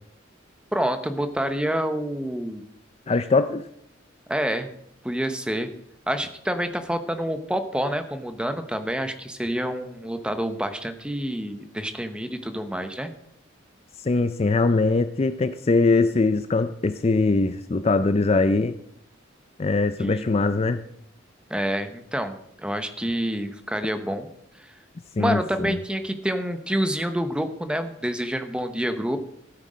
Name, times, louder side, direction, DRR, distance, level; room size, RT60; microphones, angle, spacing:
voice 1, 0.7-2.6 4.3-4.7 5.0-5.7 6.1-13.1 20.0-20.2 21.5-24.3 25.2-29.2, equal, 5° right, 8 dB, 0.9 m, -27 dB
voice 2, 3.1-3.6 14.0-18.8 19.6-20.8 25.2-25.8, left 3 dB, 30° left, 11 dB, 0.4 m, -22 dB
14.5 x 8.2 x 5.1 m, 0.71 s
head